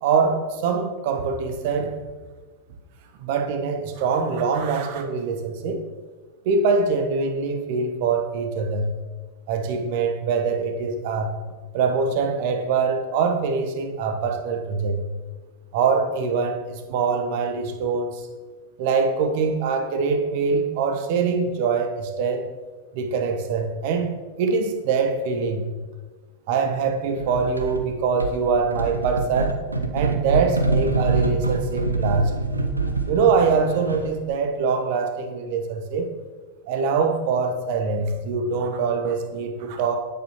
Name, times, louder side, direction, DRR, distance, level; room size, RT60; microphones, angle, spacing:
voice 1, 0.0-1.9 3.2-5.8 6.4-8.9 9.5-11.4 11.7-15.0 15.7-18.3 18.8-22.4 22.9-25.7 26.5-29.6 29.9-32.3 33.1-36.1 36.7-40.0, right 5 dB, 50° right, 5 dB, 1.0 m, -23 dB
sound 1, 27.2-27.9 28.2-34.2, right 3 dB, 80° right, 0.7 m, -25 dB
8.9 x 8.0 x 3.0 m, 1.3 s
figure-of-eight pair, 90°, 0 cm